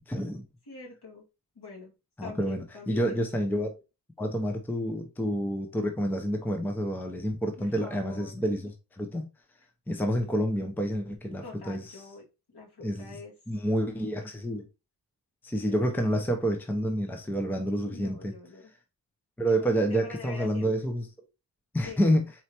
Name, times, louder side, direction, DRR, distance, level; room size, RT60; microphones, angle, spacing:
voice 1, 0.1-0.4 2.2-3.7 4.2-8.7 9.0-9.3 9.9-11.8 12.8-13.2 13.5-14.6 15.4-18.3 19.4-21.1 21.7-22.2, equal, 5° left, 0.6 m, -28 dB
voice 2, 0.7-1.3 1.5-1.9 2.2-3.2 7.6-8.4 10.2-10.4 11.4-12.2 12.5-13.3 15.7-15.8 17.9-18.7 19.6-20.7 21.8-22.1, left 4 dB, 65° left, 2.3 m, -44 dB
4.3 x 3.2 x 2.9 m
wide cardioid pair, 85°, 43 cm